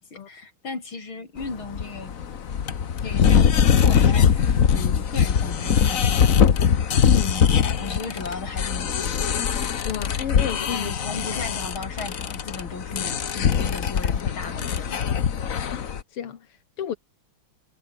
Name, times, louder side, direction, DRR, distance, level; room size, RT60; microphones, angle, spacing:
voice 1, 0.1-2.1 3.0-6.6 7.2-9.5 10.7-15.2, left 3 dB, 65° left, 5.8 m, -36 dB
sound 1, 1.4-16.0, left 7 dB, 45° left, 1.4 m, -22 dB
voice 2, 7.0-7.3 9.8-10.9 15.7-17.0, left 9 dB, 90° left, 2.6 m, -31 dB
omnidirectional pair, 2.4 m